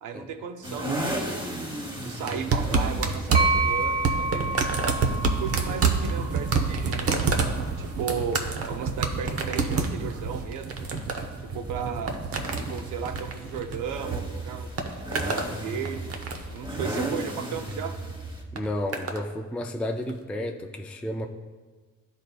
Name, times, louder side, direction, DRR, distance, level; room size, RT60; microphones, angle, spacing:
voice 1, 0.0-1.5 2.0-4.5 5.4-7.3 7.8-10.9 11.4-12.1 12.6-14.7 15.3-16.1 16.5-17.9, right 7 dB, 85° right, 7 dB, 0.6 m, -35 dB
sound 1, 0.6-18.4, right 1 dB, 15° right, 1.3 m, -37 dB
sound 2, 2.3-14.2 14.5-15.5 15.9-16.6 17.5-17.8 18.6-19.2 20.1-20.2, right 4 dB, 50° right, 0.7 m, -28 dB
sound 3, 3.3-7.1, right 2 dB, 30° right, 1.3 m, -29 dB
voice 2, 18.5-21.3, left 1 dB, 5° left, 4 dB, 0.3 m, -32 dB
11.5 x 4.1 x 2.3 m, 1.4 s
cardioid pair, 90°, 30 cm